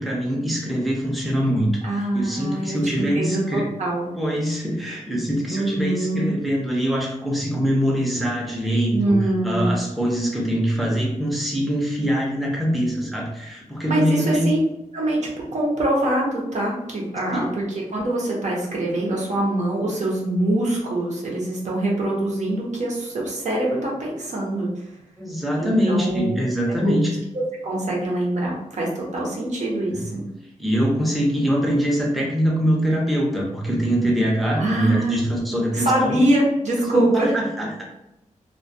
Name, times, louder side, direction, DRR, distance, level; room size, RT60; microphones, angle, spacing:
voice 1, 0.0-1.7 2.1-3.7 4.2-9.2 9.4-14.5 17.3-17.5 25.2-27.1 29.9-30.0 30.6-36.2 36.9-37.8, equal, ahead, -3 dB, 0.6 m, -23 dB
voice 2, 1.8-4.1 5.5-6.3 8.9-9.7 13.8-14.6 14.9-17.6 17.9-24.9 25.6-26.4 26.8-26.9 27.6-30.2 34.5-35.2 35.7-37.3, right 1 dB, 65° right, -3 dB, 0.8 m, -24 dB
2.2 x 2.2 x 2.6 m, 0.89 s
wide cardioid pair, 120°, 13 cm